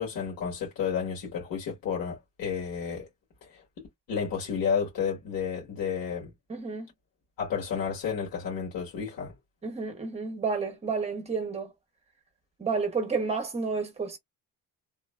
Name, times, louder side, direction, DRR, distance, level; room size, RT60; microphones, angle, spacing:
voice 1, 0.0-3.1 3.4-3.6 4.1-6.3 7.4-9.3, left 7 dB, 85° left, 1.6 m, -31 dB
voice 2, 6.5-6.9 9.6-11.7 12.6-14.2, right 4 dB, 20° right, 0.7 m, -30 dB
3.1 x 2.0 x 2.2 m
cardioid pair, 170°, 34 cm